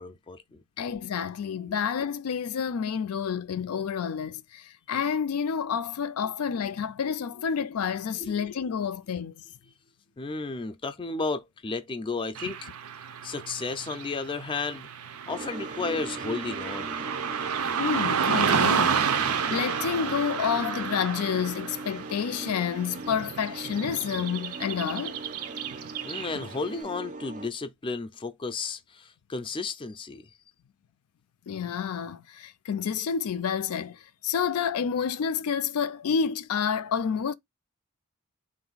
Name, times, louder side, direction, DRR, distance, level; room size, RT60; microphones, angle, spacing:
voice 1, 0.0-0.6 8.2-8.5 10.2-12.6 13.2-14.9 15.3-17.0 26.0-30.3, left 4 dB, 25° left, 0.4 m, -33 dB
voice 2, 0.8-9.4 12.5-12.6 17.8-25.2 31.5-37.3, left 7 dB, 80° left, 0.4 m, -29 dB
Car passing by / Traffic noise roadway noise, 12.3-26.6, right 7 dB, 85° right, 0.6 m, -31 dB
sound 1, 15.3-27.5, right 2 dB, 35° right, 0.4 m, -40 dB
3.9 x 2.6 x 3.9 m
head